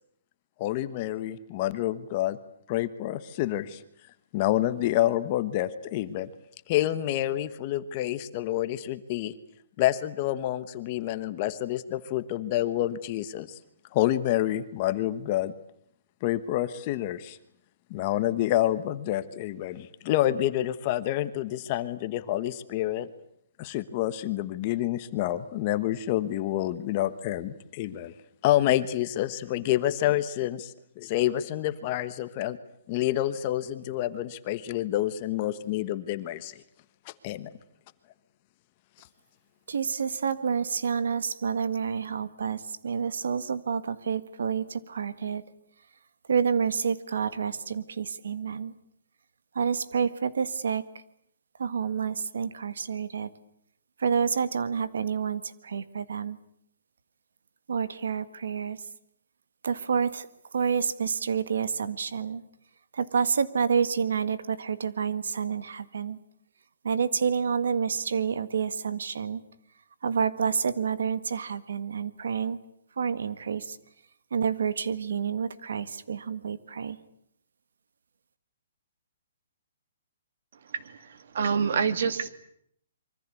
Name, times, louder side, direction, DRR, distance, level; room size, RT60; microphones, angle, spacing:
voice 1, 0.6-2.4 2.7-3.8 4.3-6.3 6.7-9.3 9.8-13.6 13.9-15.5 16.2-17.4 17.9-23.1 23.6-28.1 28.4-32.6 32.9-36.6 37.0-37.5, left 13 dB, 25° left, 12 dB, 1.1 m, -28 dB
voice 2, 39.7-45.4 46.3-48.7 49.5-50.8 51.6-53.3 54.0-56.4 57.7-58.8 59.6-62.4 62.9-66.2 66.8-69.4 70.0-72.6 73.0-73.8 74.3-77.0, right 6 dB, 75° right, 14 dB, 1.7 m, -28 dB
voice 3, 80.6-82.3, right 6 dB, 50° right, 12 dB, 2.3 m, -27 dB
26.0 x 24.0 x 8.4 m, 0.70 s
hypercardioid pair, 175°, 0 cm